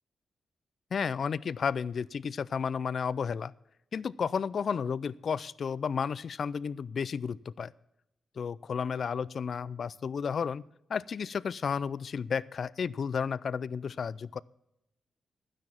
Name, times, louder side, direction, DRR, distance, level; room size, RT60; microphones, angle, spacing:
voice 1, 0.9-3.5 3.9-7.7 8.4-10.6 10.9-14.4, left 6 dB, 55° left, 20 dB, 0.3 m, -32 dB
12.0 x 9.6 x 5.8 m, 0.82 s
cardioid pair, 115°, 0 cm